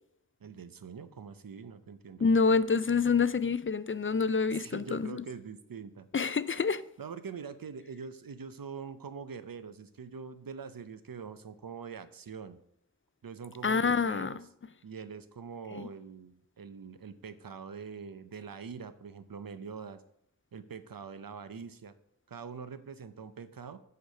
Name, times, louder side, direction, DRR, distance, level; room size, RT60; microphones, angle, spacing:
voice 1, 0.4-2.3 4.5-6.1 7.0-12.6 13.2-14.4 14.8-20.0 20.5-21.9 22.3-23.8, right 6 dB, 80° right, 0.7 m, -44 dB
voice 2, 2.2-5.2 6.1-6.8 13.6-14.3 15.7-15.9, left 5 dB, 40° left, 0.4 m, -27 dB
8.2 x 4.7 x 6.5 m
wide cardioid pair, 45°, 34 cm